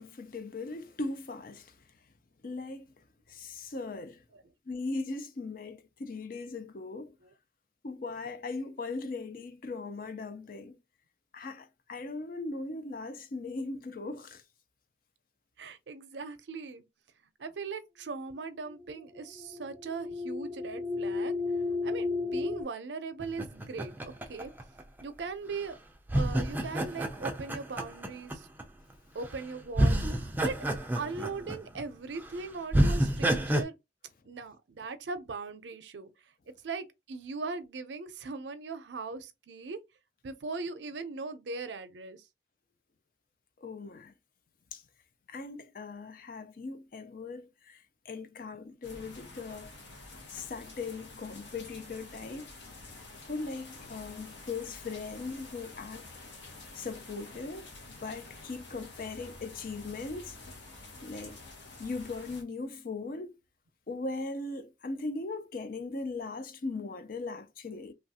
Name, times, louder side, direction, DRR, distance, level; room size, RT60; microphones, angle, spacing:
voice 1, 0.0-1.8 2.4-4.2 4.7-7.1 7.8-10.8 11.3-14.4 43.6-44.1 44.7-44.8 45.3-49.7 50.3-52.5 53.3-56.1 56.7-60.4 61.0-61.4 61.8-63.4 63.9-67.9, left 3 dB, 50° left, 0.5 m, -39 dB
voice 2, 15.6-16.8 17.4-21.3 21.8-24.5 25.0-25.8 26.1-28.5 29.1-30.6 30.9-33.8 34.3-36.1 36.6-39.8 40.2-42.2, right 4 dB, 85° right, 0.5 m, -39 dB
sound 1, 18.7-22.6, left 3 dB, 35° left, 1.0 m, -33 dB
sound 2, 23.2-25.2 26.1-28.6 29.3-29.4 29.7-31.8 32.2-32.3 32.7-33.6, right 1 dB, 10° right, 0.4 m, -28 dB
sound 3, 48.8-62.4, left 2 dB, 90° left, 1.0 m, -49 dB
3.1 x 2.4 x 2.7 m
head